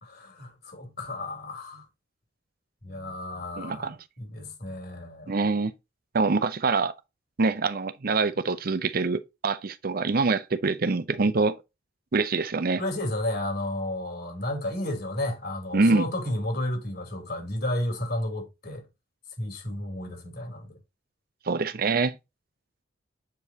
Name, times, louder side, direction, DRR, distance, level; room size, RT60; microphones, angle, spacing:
voice 1, 0.0-1.9 2.8-5.4 12.8-18.8 19.4-20.8, left 1 dB, 55° left, 3.3 m, -32 dB
voice 2, 3.6-3.9 5.3-5.7 6.1-6.9 7.4-11.6 12.1-12.8 15.7-16.0 21.5-22.2, right 3 dB, 50° right, 0.6 m, -25 dB
7.9 x 5.2 x 2.8 m
head